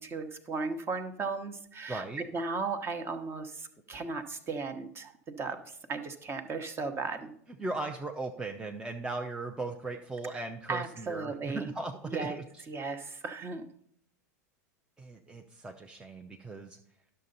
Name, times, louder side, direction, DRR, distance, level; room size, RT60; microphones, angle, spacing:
voice 1, 0.0-7.3 10.7-11.7 12.1-12.3 12.7-13.6, right 4 dB, 25° right, 8 dB, 1.1 m, -36 dB
voice 2, 1.9-2.2 7.6-12.6 15.0-16.8, right 2 dB, 10° right, 2 dB, 0.7 m, -38 dB
11.0 x 6.7 x 4.0 m, 0.66 s
hypercardioid pair, 95°, 9 cm